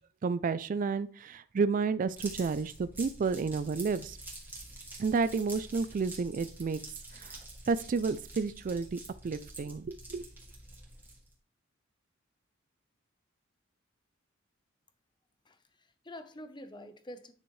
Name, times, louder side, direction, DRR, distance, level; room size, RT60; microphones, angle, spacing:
voice 1, 0.2-4.2 5.0-6.8 7.1-7.4 7.7-10.2, right 4 dB, 40° right, 14 dB, 0.3 m, -31 dB
sound 1, 2.2-11.3, right 2 dB, 10° right, 2.2 m, -47 dB
voice 2, 15.5-17.3, left 1 dB, 25° left, 9 dB, 0.8 m, -47 dB
9.8 x 6.2 x 3.2 m, 0.42 s
head